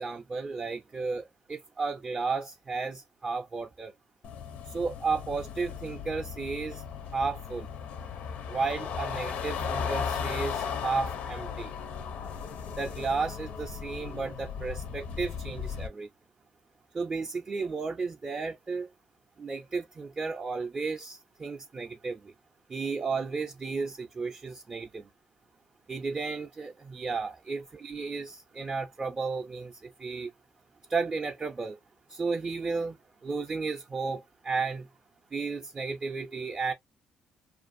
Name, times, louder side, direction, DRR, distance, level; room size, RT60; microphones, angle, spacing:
voice 1, 0.0-3.9 4.7-6.8 7.1-7.7 8.5-11.7 12.8-16.1 16.9-18.9 19.4-22.3 22.7-25.0 25.9-30.3 30.9-31.8 32.1-33.0 33.2-34.9 35.3-36.7, right 4 dB, 30° right, 0.4 m, -33 dB
sound 1, 4.2-15.9, left 6 dB, 70° left, 0.5 m, -36 dB
2.5 x 2.4 x 2.5 m
cardioid pair, 105°, 2 cm